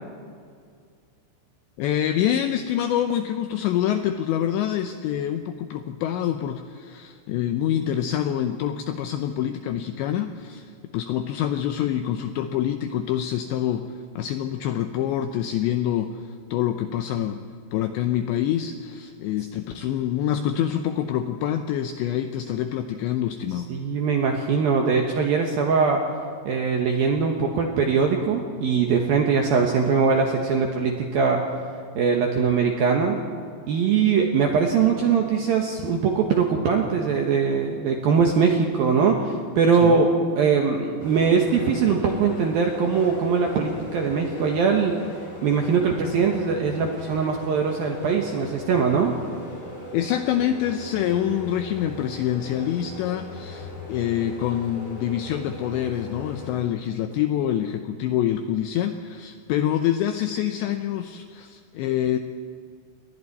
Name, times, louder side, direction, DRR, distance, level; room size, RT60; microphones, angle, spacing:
voice 1, 1.8-17.4 17.7-23.7 39.8-40.0 49.9-62.2, left 10 dB, 85° left, 7 dB, 2.5 m, -26 dB
voice 2, 23.7-26.0 26.5-31.4 32.0-33.2 33.7-45.0 45.4-49.2, right 5 dB, 75° right, 2 dB, 2.2 m, -21 dB
sound 1, 41.0-56.5, left 1 dB, 50° left, 7.4 m, -39 dB
29.5 x 22.5 x 4.2 m, 2.1 s
omnidirectional pair, 5.9 m